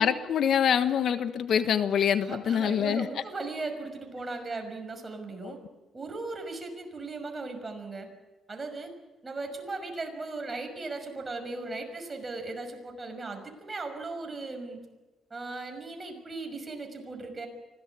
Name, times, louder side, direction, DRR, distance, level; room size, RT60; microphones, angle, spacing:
voice 1, 0.0-3.1 5.4-5.5, left 8 dB, 65° left, 10 dB, 1.4 m, -25 dB
voice 2, 2.2-5.6 5.9-8.1 8.5-8.9 9.2-14.8 15.3-17.5, right 3 dB, 25° right, 5 dB, 5.9 m, -37 dB
25.0 x 17.0 x 8.4 m, 1.2 s
cardioid pair, 90°, 0 cm